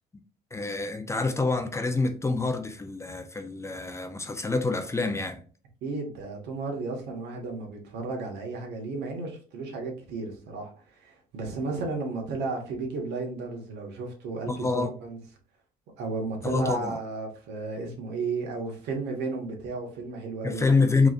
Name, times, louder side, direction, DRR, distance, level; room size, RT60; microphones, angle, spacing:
voice 1, 0.5-5.4 14.5-14.9 16.4-17.0 20.4-21.1, left 3 dB, 15° left, 0.6 m, -26 dB
voice 2, 5.8-10.7 11.0-15.2 16.0-20.6, right 3 dB, 85° right, 1.5 m, -33 dB
4.7 x 3.1 x 2.5 m
cardioid pair, 110°, 17 cm